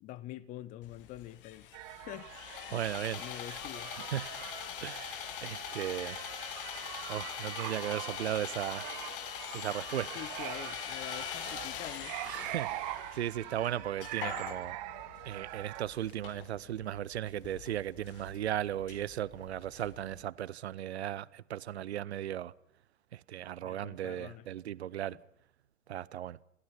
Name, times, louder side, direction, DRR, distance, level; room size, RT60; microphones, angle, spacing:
voice 1, 0.0-2.3 2.7-2.9 3.2-4.0 9.9-12.5 13.4-13.5 23.6-24.5 25.1-25.2, left 14 dB, 20° left, 0.7 m, -46 dB
Sawing, 0.8-20.2, left 11 dB, 40° left, 1.3 m, -44 dB
sound 1, 1.7-15.8, right 17 dB, 35° right, 1.0 m, -43 dB
voice 2, 2.7-3.6 4.1-4.3 4.8-6.2 7.1-8.9 9.5-10.1 12.3-12.7 13.1-14.8 15.2-22.5 23.1-25.2 25.9-26.4, right 11 dB, 55° right, 0.7 m, -36 dB
sound 2, 9.1-14.5, left 4 dB, 75° left, 2.4 m, -59 dB
28.5 x 15.5 x 5.9 m
figure-of-eight pair, 105°, 40 cm